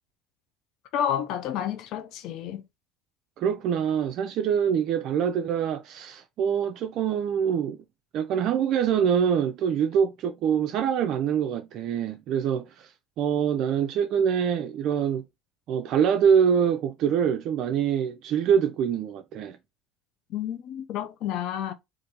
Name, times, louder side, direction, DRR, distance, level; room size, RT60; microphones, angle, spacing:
voice 1, 0.9-2.6 20.3-21.7, left 10 dB, 65° left, 0.5 m, -30 dB
voice 2, 3.4-7.8 8.1-15.2 15.7-19.6, right 8 dB, 60° right, 0.3 m, -25 dB
2.7 x 2.5 x 3.7 m
hypercardioid pair, 80°, 0 cm